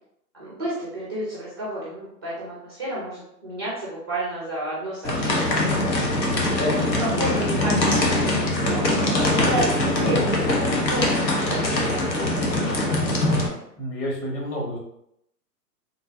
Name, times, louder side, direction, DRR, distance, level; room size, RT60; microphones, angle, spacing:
voice 1, 0.3-5.6 6.6-13.4, right 1 dB, 15° right, -6 dB, 0.3 m, -31 dB
sound 1, 5.0-13.5, left 1 dB, 85° left, 1.0 m, -22 dB
voice 2, 13.8-14.8, equal, 30° left, -4 dB, 1.3 m, -29 dB
3.8 x 2.6 x 2.6 m, 0.77 s
hypercardioid pair, 125°, 49 cm